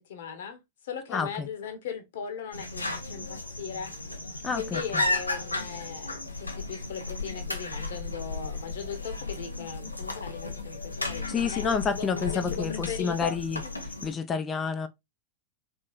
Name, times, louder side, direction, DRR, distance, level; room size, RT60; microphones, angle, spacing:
voice 1, 0.0-3.9 4.5-13.4, left 7 dB, 60° left, 1.3 m, -38 dB
voice 2, 1.1-1.5 4.4-5.0 11.3-13.6 14.0-14.9, left 5 dB, 20° left, 0.6 m, -29 dB
sound 1, 2.5-14.1, left 2 dB, 85° left, 0.8 m, -34 dB
4.1 x 3.8 x 2.4 m
figure-of-eight pair, 90°, 0 cm